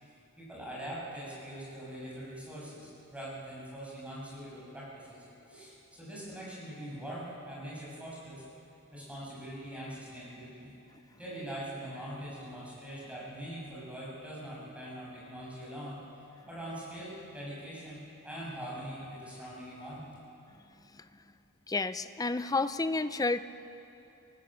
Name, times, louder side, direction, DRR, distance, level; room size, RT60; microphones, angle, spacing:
voice 1, 0.0-8.4 8.9-10.7 11.2-16.0 16.5-20.1, right 1 dB, 5° right, -6 dB, 7.8 m, -43 dB
voice 2, 21.7-23.4, left 3 dB, 15° left, 12 dB, 0.6 m, -30 dB
30.0 x 19.0 x 7.8 m, 2.8 s
head